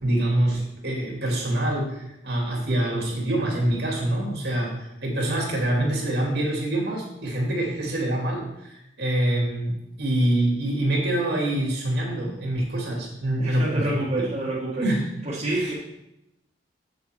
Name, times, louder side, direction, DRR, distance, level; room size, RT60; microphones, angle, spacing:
voice 1, 0.0-14.0 14.8-15.1 15.5-15.7, right 1 dB, 65° right, -1 dB, 2.7 m, -25 dB
voice 2, 13.4-14.9 15.3-15.7, right 2 dB, 35° right, -7 dB, 1.7 m, -27 dB
7.5 x 6.9 x 4.6 m, 0.86 s
head